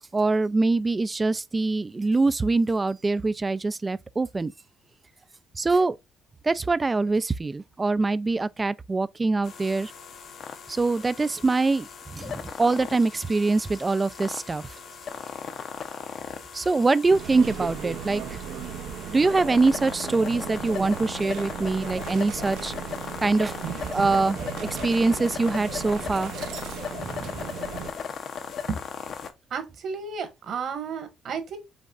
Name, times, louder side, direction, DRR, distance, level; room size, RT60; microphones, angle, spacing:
voice 1, 0.1-4.5 5.6-6.0 6.4-9.9 10.7-14.7 16.5-18.4 19.1-22.7 23.2-23.5 23.9-26.3 27.0-27.5, right 3 dB, 20° right, 0.3 m, -24 dB
sound 1, 9.4-29.3, left 6 dB, 45° left, 0.7 m, -38 dB
sound 2, 17.1-27.9, right 9 dB, 70° right, 0.6 m, -37 dB
voice 2, 29.5-31.6, right 5 dB, 50° right, 1.4 m, -32 dB
5.3 x 3.6 x 2.4 m
cardioid pair, 130°, 0 cm